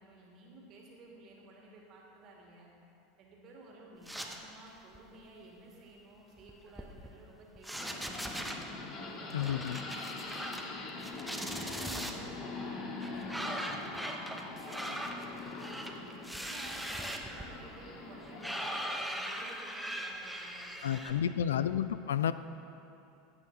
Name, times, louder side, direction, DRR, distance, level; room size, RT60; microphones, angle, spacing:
voice 1, 0.0-2.7 3.2-8.6 9.0-11.1 11.5-14.1 14.4-16.0 16.4-21.6, right 2 dB, 45° right, -2 dB, 2.5 m, -54 dB
sound 1, 4.1-4.7 4.9-5.2 6.4-7.3 7.6-8.6 9.3-10.7 11.0-12.1 13.0-21.1, equal, ahead, 1.0 m, -40 dB
sound 2, 7.7-18.7, left 3 dB, 45° left, 1.9 m, -43 dB
voice 2, 9.3-9.8 20.8-22.3, left 9 dB, 70° left, 13 dB, 0.3 m, -31 dB
13.5 x 8.8 x 4.1 m, 2.7 s
figure-of-eight pair, 80°, 0 cm